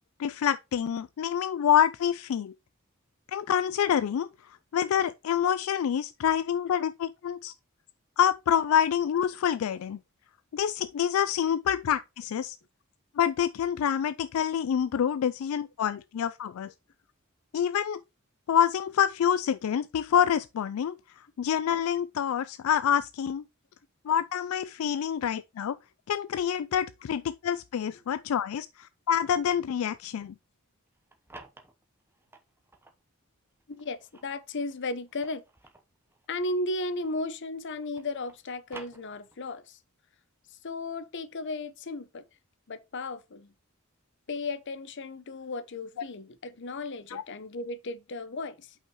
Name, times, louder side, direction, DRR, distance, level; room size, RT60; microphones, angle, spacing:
voice 1, 0.2-2.5 3.3-4.3 4.7-7.5 8.2-10.0 10.5-12.6 13.2-16.7 17.5-18.0 18.5-23.4 24.1-25.8 26.1-30.3 47.1-47.2, left 9 dB, 80° left, 0.3 m, -27 dB
sound 1, 30.9-33.0 33.6-37.3 37.6-39.6, right 2 dB, 10° right, 0.9 m, -52 dB
voice 2, 33.7-35.4 36.3-39.8 40.5-42.2 42.7-43.5 44.3-48.7, left 2 dB, 60° left, 0.7 m, -35 dB
5.6 x 4.6 x 4.6 m
head